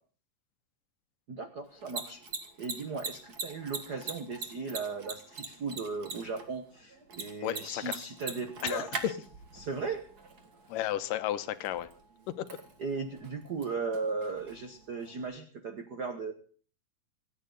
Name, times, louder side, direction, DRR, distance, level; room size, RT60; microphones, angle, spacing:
voice 1, 1.3-2.2 2.6-9.1 9.6-10.0 12.8-16.3, right 4 dB, 80° right, 7 dB, 0.9 m, -37 dB
Mechanisms, 1.6-15.3, right 4 dB, 35° right, 2.0 m, -44 dB
voice 2, 7.4-8.0 8.6-8.9 10.7-11.9 12.4-12.5, left 12 dB, 80° left, 12 dB, 2.5 m, -33 dB
26.5 x 9.6 x 3.9 m, 0.42 s
omnidirectional pair, 3.8 m